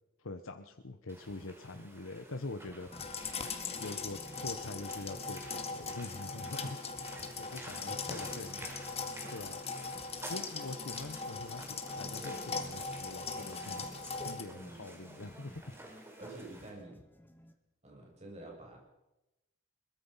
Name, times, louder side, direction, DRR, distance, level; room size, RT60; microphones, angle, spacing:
voice 1, 0.2-2.9 3.8-6.8 7.4-8.7 9.3-9.6 10.3-13.8 14.2-15.7, left 2 dB, 85° left, 7 dB, 1.0 m, -44 dB
sound 1, 1.1-16.7, right 1 dB, 15° right, 4.8 m, -51 dB
sound 2, 2.5-17.6, left 1 dB, 10° left, 1.5 m, -57 dB
sound 3, 2.9-14.4, left 4 dB, 30° left, 2.1 m, -40 dB
voice 2, 7.8-8.4 14.5-14.9 15.6-15.8 16.2-17.0 17.8-18.8, right 2 dB, 35° right, 0 dB, 7.5 m, -49 dB
22.5 x 22.0 x 5.7 m, 0.98 s
head